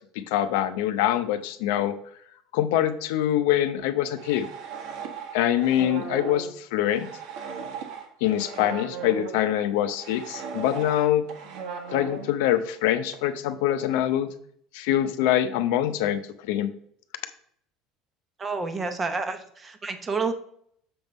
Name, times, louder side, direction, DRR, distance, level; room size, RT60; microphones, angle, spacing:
voice 1, 0.3-1.9 2.5-4.5 5.3-7.1 8.2-11.3 11.9-14.3 14.7-16.2 16.5-16.7, left 12 dB, 80° left, 10 dB, 0.6 m, -24 dB
sound 1, 3.8-9.4 9.9-12.9 13.1-13.2 13.8-14.1, right 6 dB, 65° right, 1.3 m, -37 dB
voice 2, 18.4-20.3, right 4 dB, 20° right, 8 dB, 0.8 m, -29 dB
6.9 x 3.6 x 5.3 m, 0.66 s
cardioid pair, 135°, 0 cm